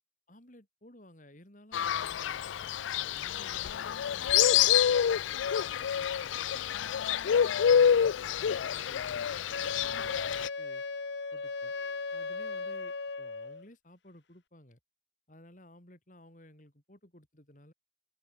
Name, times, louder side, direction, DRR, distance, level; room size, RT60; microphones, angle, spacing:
voice 1, 0.3-7.1 7.5-10.8 11.3-11.7 12.1-14.8 15.3-17.7, left 1 dB, 45° left, 4.1 m, -56 dB
Fowl, 1.7-10.5, left 8 dB, 90° left, 0.4 m, -27 dB
Wind instrument woodwind instrument, 9.5-13.6, left 4 dB, 70° left, 1.1 m, -37 dB
open air
head